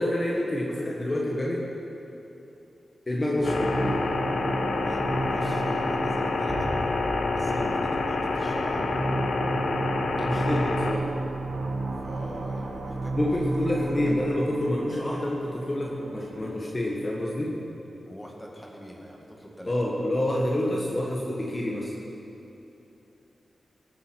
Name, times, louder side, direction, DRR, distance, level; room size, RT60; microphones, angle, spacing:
voice 1, 0.0-1.7 3.1-4.0 7.5-7.7 10.2-11.1 13.2-17.6 19.7-21.9, left 1 dB, 30° left, -3 dB, 1.4 m, -28 dB
voice 2, 3.2-3.6 4.8-6.9 7.3-8.9 10.2-10.8 12.0-13.7 14.0-14.2 18.1-19.8, equal, 10° left, -1 dB, 2.0 m, -43 dB
sound 1, 3.3-16.7, right 2 dB, 80° right, 1.5 m, -34 dB
sound 2, 3.4-10.9, left 3 dB, 80° left, 1.1 m, -28 dB
sound 3, 6.5-10.7 11.0-11.1, right 1 dB, 40° right, 2.3 m, -40 dB
19.0 x 9.2 x 4.7 m, 2.9 s
wide cardioid pair, 100°, 0 cm